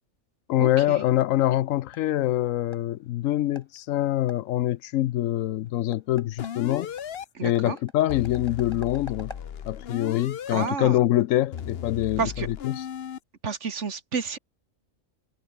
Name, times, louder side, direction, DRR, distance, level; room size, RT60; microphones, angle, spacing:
voice 1, 0.5-6.9 7.4-9.3 9.7-12.8, left 14 dB, 80° left, 1.0 m, -25 dB
sound 1, 0.6-12.4, left 1 dB, 20° left, 5.0 m, -52 dB
sound 2, 6.4-7.3 8.1-10.7 11.5-13.2, left 8 dB, 55° left, 1.0 m, -36 dB
voice 2, 7.4-7.8 10.5-11.0 12.2-12.5 13.4-14.4, right 5 dB, 60° right, 2.0 m, -30 dB
omnidirectional pair, 1.4 m